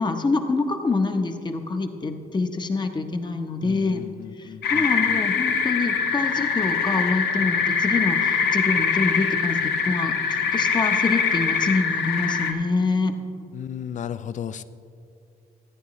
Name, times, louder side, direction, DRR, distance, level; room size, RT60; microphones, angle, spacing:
voice 1, 0.0-4.0 4.4-13.1, left 3 dB, 30° left, 6 dB, 0.8 m, -26 dB
voice 2, 3.6-5.2 13.5-14.6, left 9 dB, 50° left, 14 dB, 0.4 m, -35 dB
sound 1, 4.6-12.5, left 6 dB, 90° left, 0.9 m, -23 dB
14.5 x 9.3 x 3.1 m, 2.5 s
cardioid pair, 105°, 16 cm